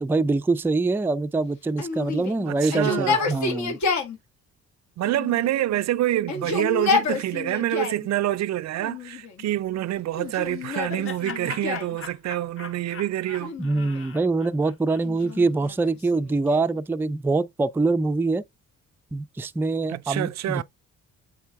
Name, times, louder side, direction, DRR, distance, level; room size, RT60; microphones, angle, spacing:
voice 1, 0.0-3.8 13.6-18.4 19.1-20.6, right 3 dB, 5° right, 0.3 m, -24 dB
Yell, 1.8-4.2 5.0-5.8 6.2-8.1 8.8-9.5 10.2-12.0 13.3-14.2 15.0-16.8, left 5 dB, 65° left, 1.9 m, -29 dB
voice 2, 2.5-3.4 5.0-13.5 19.9-20.6, right 13 dB, 60° right, 0.5 m, -27 dB
Laughter, 10.2-15.4, left 6 dB, 45° left, 1.5 m, -41 dB
8.4 x 3.3 x 3.5 m
cardioid pair, 90°, 30 cm